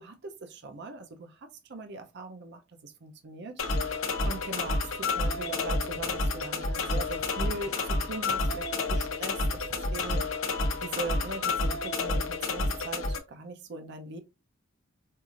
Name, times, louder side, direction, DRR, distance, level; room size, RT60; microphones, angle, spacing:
voice 1, 0.0-1.4 1.7-3.6 3.8-10.2 10.8-14.2, right 3 dB, 60° right, 0.6 m, -41 dB
sound 1, 3.6-13.2, left 3 dB, 85° left, 0.7 m, -30 dB
sound 2, 5.8-6.8 7.0-8.0 8.3-9.3 9.5-10.5, left 1 dB, 15° left, 0.5 m, -49 dB
4.6 x 2.5 x 2.5 m
head